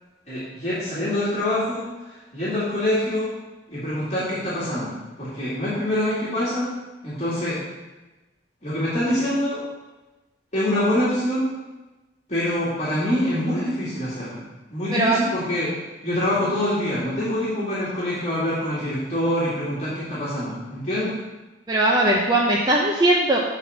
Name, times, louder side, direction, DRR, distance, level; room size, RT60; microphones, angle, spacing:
voice 1, 0.3-1.9 2.3-3.3 3.7-6.7 7.0-7.6 8.6-9.6 10.5-11.5 12.3-14.4 14.7-15.8 16.0-21.2, left 1 dB, 40° left, -9 dB, 2.1 m, -25 dB
voice 2, 21.7-23.4, right 1 dB, 25° right, -3 dB, 0.7 m, -19 dB
7.2 x 4.1 x 6.6 m, 1.1 s
head